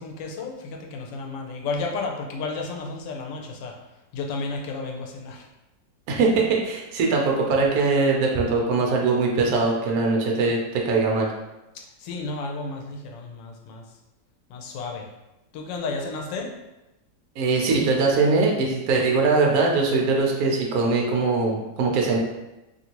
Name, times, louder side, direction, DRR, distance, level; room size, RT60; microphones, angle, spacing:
voice 1, 0.0-3.8 4.1-5.5 12.0-13.8 14.5-15.1 15.5-16.5, left 3 dB, 90° left, 1 dB, 1.3 m, -32 dB
voice 2, 6.1-11.3 17.4-22.2, right 3 dB, 70° right, 0 dB, 0.9 m, -21 dB
2.9 x 2.6 x 2.8 m, 0.98 s
omnidirectional pair, 1.9 m